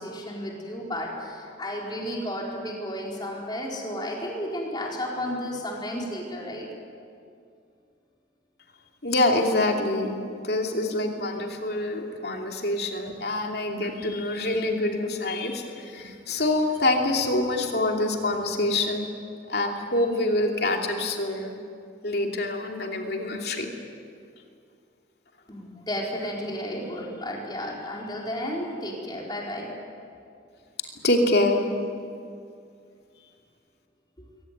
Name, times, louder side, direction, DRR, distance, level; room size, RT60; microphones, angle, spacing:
voice 1, 0.0-6.7 25.5-29.7, equal, 25° left, -2 dB, 4.4 m, -33 dB
voice 2, 9.0-10.2 10.4-19.1 19.5-21.6 22.0-23.7 31.0-31.6, left 2 dB, 55° left, 2 dB, 2.9 m, -25 dB
23.0 x 18.0 x 9.5 m, 2.3 s
head